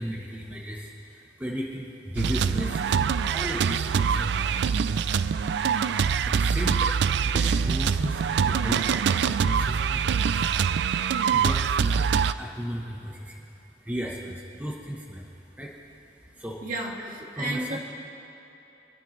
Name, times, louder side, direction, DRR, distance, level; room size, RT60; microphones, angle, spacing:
voice 1, 0.0-3.0 3.3-4.7 6.2-10.5 11.0-13.5 13.8-15.7 16.1-16.6 17.3-17.8, equal, 10° right, -2 dB, 1.0 m, -36 dB
sound 1, 2.2-12.3, right 6 dB, 70° right, 0.3 m, -24 dB
voice 2, 16.6-17.8, right 1 dB, 50° right, -1 dB, 1.8 m, -32 dB
26.0 x 12.5 x 3.2 m, 3.0 s
head